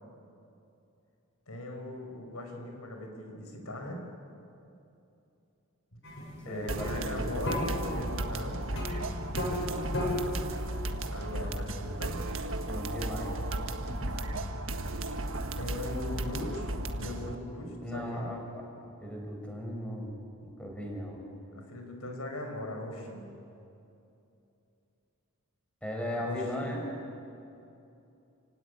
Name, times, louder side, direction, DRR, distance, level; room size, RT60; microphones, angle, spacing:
voice 1, 1.5-4.0 5.9-6.0 6.4-8.7 11.1-12.3 15.6-18.3 21.5-23.3 26.1-26.4, left 1 dB, 80° left, 3 dB, 5.2 m, -39 dB
sound 1, 6.0-14.3, left 1 dB, 55° left, 7.9 m, -37 dB
voice 2, 6.4-7.4 12.7-13.4 17.8-20.1 20.4-21.2 25.8-26.9, equal, 5° left, 0 dB, 5.0 m, -37 dB
sound 2, 6.7-17.4, right 1 dB, 65° right, 1.5 m, -35 dB
30.0 x 16.5 x 9.8 m, 2.7 s
head